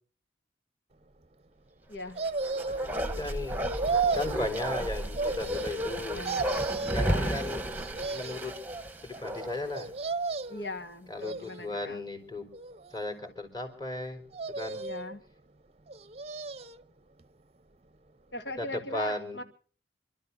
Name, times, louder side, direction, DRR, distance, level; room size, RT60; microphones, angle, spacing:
Bark, 2.2-9.8 10.1-10.2, equal, 10° right, 1.2 m, -33 dB
sound 1, 2.2-3.0 3.6-4.4 5.2-5.9 6.2-7.1 7.7-8.6 9.7-10.7 11.2-11.9 12.5-13.3 14.3-15.1 15.9-16.8 17.2-17.3, right 4 dB, 35° right, 0.7 m, -33 dB
voice 1, 2.6-3.6 4.1-6.2 6.9-7.6 8.0-8.5 9.0-9.9 11.1-12.5 12.9-14.2 14.6-14.8 18.6-19.4, left 1 dB, 25° left, 6 dB, 4.0 m, -36 dB
voice 2, 6.1-6.6 6.9-7.5 10.5-12.0 14.8-15.2 18.3-19.4, left 2 dB, 80° left, 7 dB, 2.2 m, -40 dB
28.0 x 12.5 x 4.1 m, 0.42 s
head